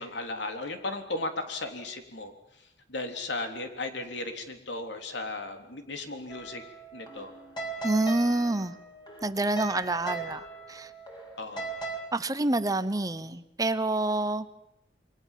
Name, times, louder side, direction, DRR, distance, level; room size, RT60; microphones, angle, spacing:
voice 1, 0.0-2.3 2.9-6.6 6.9-7.3 11.4-11.7, left 2 dB, 70° left, 3.5 m, -35 dB
sound 1, 6.3-12.0, right 3 dB, 25° left, 6.2 m, -39 dB
voice 2, 7.8-8.7 9.2-10.9 12.1-14.5, right 2 dB, 20° right, 0.9 m, -27 dB
28.0 x 23.0 x 7.5 m
head